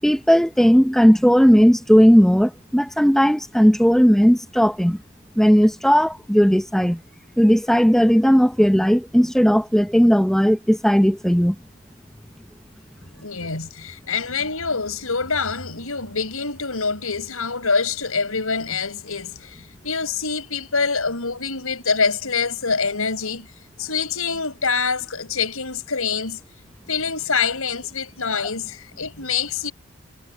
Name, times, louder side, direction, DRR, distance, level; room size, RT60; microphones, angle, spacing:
voice 1, 0.0-5.0 5.4-7.0 7.4-11.6, equal, ahead, 0.7 m, -16 dB
voice 2, 13.2-23.5 23.8-26.4 26.9-29.7, left 5 dB, 75° left, 5.2 m, -25 dB
head